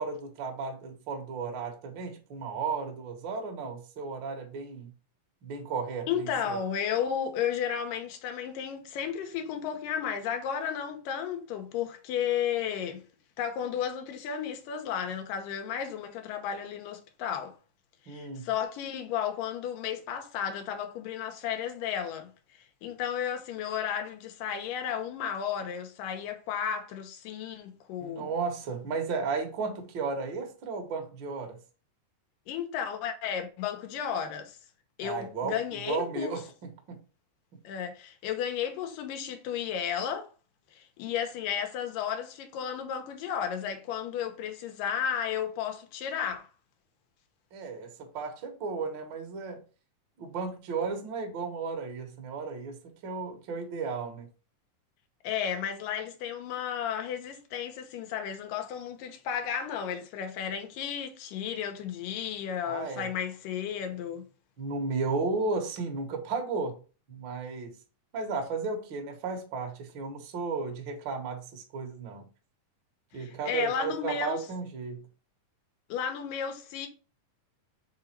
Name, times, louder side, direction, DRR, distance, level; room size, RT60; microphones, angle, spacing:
voice 1, 0.0-4.9 5.4-6.6 18.1-18.5 28.0-31.6 35.0-35.6 35.8-37.0 47.5-49.6 50.2-54.3 62.6-63.1 64.6-66.8 67.1-67.8 68.1-72.3 73.1-75.0, right 4 dB, 50° right, 1.4 m, -34 dB
voice 2, 6.1-13.0 13.4-17.6 18.1-28.3 32.5-34.6 35.0-36.3 37.6-40.3 40.7-46.5 55.2-64.3 73.1-74.4 75.9-76.9, left 8 dB, 90° left, 2.6 m, -33 dB
5.5 x 3.9 x 4.4 m
omnidirectional pair, 3.8 m